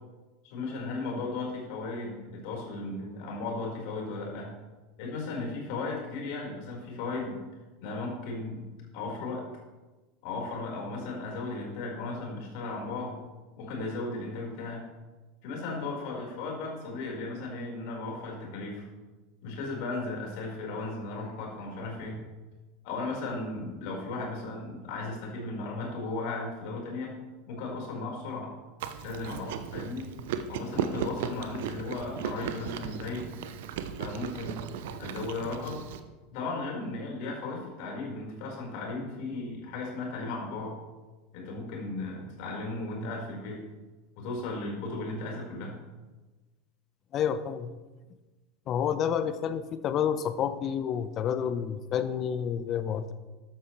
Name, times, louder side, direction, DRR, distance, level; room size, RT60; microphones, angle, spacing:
voice 1, 0.4-4.5 5.0-7.4 7.8-8.7 8.9-9.4 10.2-13.1 13.6-14.9 15.4-18.9 19.4-22.2 22.8-27.1 27.5-28.5 29.0-30.1 30.5-33.3 34.0-35.8 36.3-40.7 41.3-43.6 44.2-45.8, left 3 dB, 55° left, -1 dB, 4.8 m, -36 dB
Chewing mastication, 28.8-36.0, right 8 dB, 65° right, 0.9 m, -36 dB
voice 2, 47.1-47.8 48.7-53.1, left 8 dB, 40° left, 12 dB, 1.0 m, -29 dB
14.0 x 12.5 x 3.3 m, 1.2 s
figure-of-eight pair, 80°, 0 cm